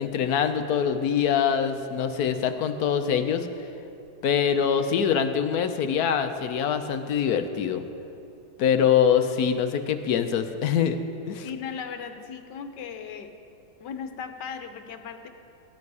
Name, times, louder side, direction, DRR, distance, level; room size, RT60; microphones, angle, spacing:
voice 1, 0.0-3.5 4.2-7.8 8.6-11.0 11.3-11.5, left 8 dB, 70° left, 8 dB, 1.2 m, -24 dB
voice 2, 11.4-13.3 13.8-15.3, left 7 dB, 90° left, 7 dB, 1.5 m, -37 dB
15.5 x 12.0 x 4.8 m, 2.8 s
omnidirectional pair, 1.8 m